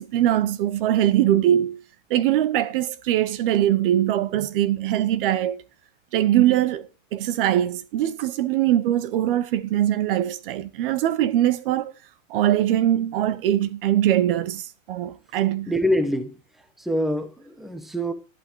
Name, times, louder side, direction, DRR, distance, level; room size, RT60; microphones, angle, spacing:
voice 1, 0.0-1.8 2.1-5.6 6.1-11.9 12.3-15.7, right 12 dB, 45° right, 0.9 m, -22 dB
voice 2, 15.7-16.4 16.8-18.1, equal, ahead, 0.9 m, -25 dB
11.5 x 11.0 x 4.5 m
supercardioid pair, 165°, 39 cm